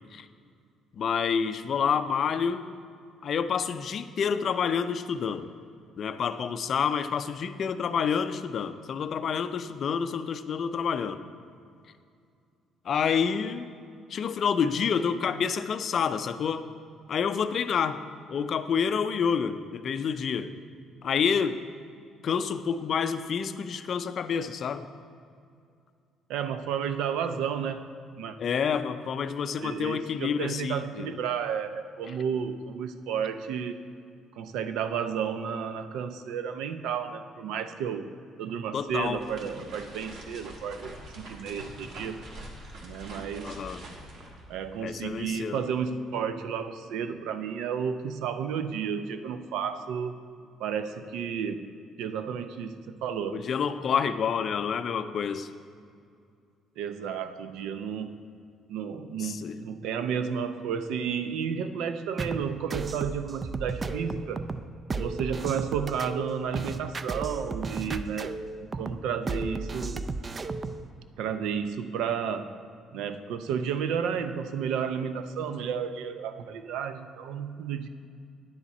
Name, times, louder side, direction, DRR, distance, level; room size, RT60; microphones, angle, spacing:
voice 1, 1.0-2.7 3.2-5.5 6.0-11.2 12.9-13.7 14.1-16.7 17.1-18.0 18.3-20.5 21.0-21.6 22.2-24.9 28.4-31.1 38.7-39.2 43.4-43.8 44.8-45.6 53.3-55.5 59.2-59.6, left 7 dB, 45° left, 11 dB, 0.4 m, -28 dB
voice 2, 26.3-27.9 28.2-28.4 29.6-33.8 34.4-42.2 42.8-43.6 44.5-50.2 50.6-51.7 52.0-53.4 56.8-58.2 58.7-64.5 65.0-68.4 68.6-70.1 71.2-72.5 72.9-77.9, right 7 dB, 85° right, 10 dB, 0.5 m, -32 dB
sound 1, 38.9-45.2, right 1 dB, 65° right, 1.5 m, -45 dB
sound 2, 62.2-70.8, right 3 dB, 25° right, 0.3 m, -34 dB
9.8 x 7.1 x 4.1 m, 2.4 s
cardioid pair, 135°, 0 cm